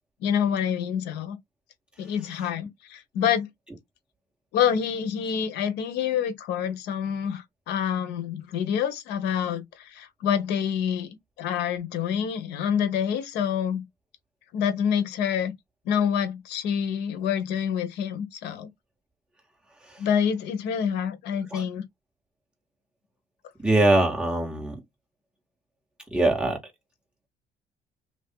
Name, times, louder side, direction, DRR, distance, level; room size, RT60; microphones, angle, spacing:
voice 1, 0.2-1.4 2.0-3.5 4.5-11.1 11.4-13.9 14.5-15.5 15.9-18.7 20.0-21.8, left 8 dB, 85° left, 1.0 m, -27 dB
voice 2, 23.6-24.7 26.1-26.6, right 2 dB, 5° right, 2.0 m, -22 dB
3.1 x 2.7 x 3.6 m
cardioid pair, 110°, 17 cm